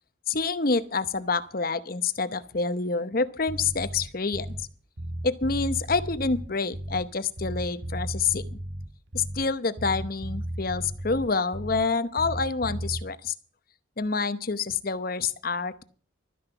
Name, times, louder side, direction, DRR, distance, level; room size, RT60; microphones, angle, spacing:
voice 1, 0.3-4.7 5.2-8.6 9.1-13.3 14.0-15.8, left 4 dB, 45° left, 13 dB, 0.8 m, -27 dB
Bass guitar, 3.5-4.7 5.0-7.1 7.4-9.5 9.8-11.9 12.2-13.0, right 1 dB, 55° right, 1.7 m, -35 dB
13.0 x 9.8 x 6.8 m, 0.43 s
head